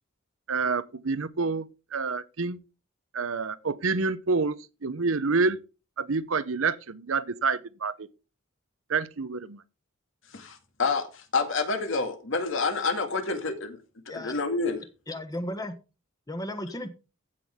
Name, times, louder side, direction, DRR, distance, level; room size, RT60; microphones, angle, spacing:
voice 1, 0.5-1.7 1.9-2.6 3.1-5.6 6.0-8.1 8.9-9.6, right 4 dB, 80° right, 0.9 m, -28 dB
voice 2, 10.3-13.8 14.1-14.8, left 4 dB, 70° left, 2.1 m, -28 dB
voice 3, 15.1-15.7 16.3-16.9, left 1 dB, 20° left, 1.4 m, -34 dB
15.0 x 6.1 x 3.6 m
head